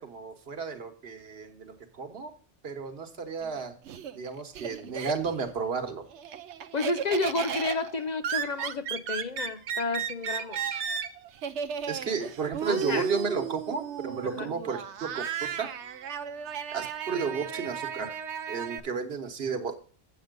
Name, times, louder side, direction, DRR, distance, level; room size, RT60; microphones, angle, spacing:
voice 1, 0.0-2.3 2.6-3.7 4.1-6.1 11.9-15.7 16.7-18.1 18.5-19.8, right 5 dB, 60° right, 1.4 m, -33 dB
Laughter, 3.4-5.5 5.9-18.8, right 8 dB, 85° right, 0.9 m, -35 dB
voice 2, 6.7-10.7 12.7-13.1 14.4-14.5, left 3 dB, 50° left, 0.6 m, -31 dB
8.1 x 6.9 x 5.2 m
omnidirectional pair, 1.2 m